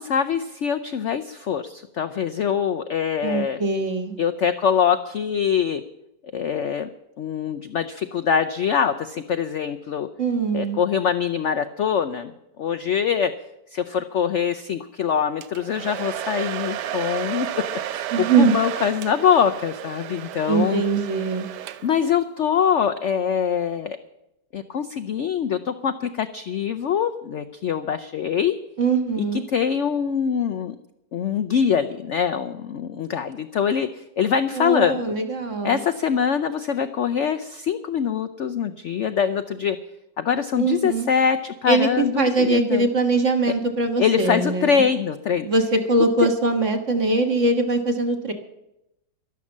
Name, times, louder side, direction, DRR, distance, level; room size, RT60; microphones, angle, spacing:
voice 1, 0.0-3.6 4.2-5.8 6.3-6.9 7.2-10.1 10.5-12.3 12.6-13.3 13.7-17.5 17.9-20.8 21.8-24.0 24.5-28.6 29.2-30.8 31.1-35.1 35.6-39.8 40.2-42.9 44.0-45.5 46.2-46.3, left 7 dB, 80° left, 11 dB, 0.6 m, -23 dB
voice 2, 3.2-4.2 10.2-10.8 18.1-18.5 20.5-21.5 28.8-29.4 34.6-35.8 40.6-41.1 41.7-44.8 45.5-48.3, right 3 dB, 45° right, 5 dB, 1.7 m, -22 dB
Domestic sounds home sounds, 15.4-22.1, right 11 dB, 70° right, 1.3 m, -32 dB
12.0 x 11.5 x 7.3 m, 0.87 s
omnidirectional pair, 2.0 m